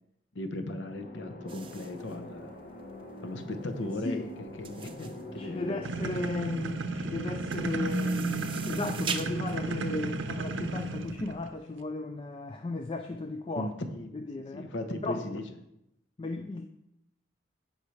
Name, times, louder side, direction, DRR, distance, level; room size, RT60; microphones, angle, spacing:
voice 1, 0.3-2.5 3.2-5.8 13.6-14.2 14.5-15.4, left 1 dB, 65° left, 6 dB, 0.9 m, -37 dB
sound 1, 0.8-8.5, left 2 dB, 45° left, 1.1 m, -46 dB
sound 2, 1.5-11.1, right 6 dB, 25° right, 0.6 m, -42 dB
voice 2, 5.4-13.7 14.1-14.7 15.0-15.2 16.2-16.7, left 2 dB, 25° left, 5 dB, 0.4 m, -35 dB
sound 3, 5.8-11.5, right 2 dB, 75° right, 0.7 m, -33 dB
15.5 x 5.7 x 3.2 m, 0.83 s
head